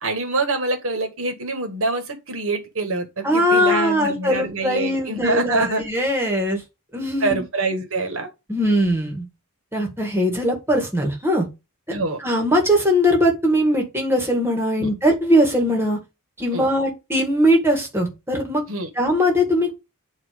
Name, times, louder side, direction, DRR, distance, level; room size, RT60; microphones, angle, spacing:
voice 1, 0.0-5.8 7.2-8.3 11.9-12.2 14.8-14.9 16.5-16.6 18.7-18.9, right 2 dB, 65° right, 1.7 m, -25 dB
voice 2, 3.2-6.6 6.9-7.4 8.5-9.2 9.7-11.5 11.9-16.0 16.4-18.6 19.0-19.7, equal, 10° right, 2.0 m, -20 dB
8.6 x 3.1 x 5.2 m
head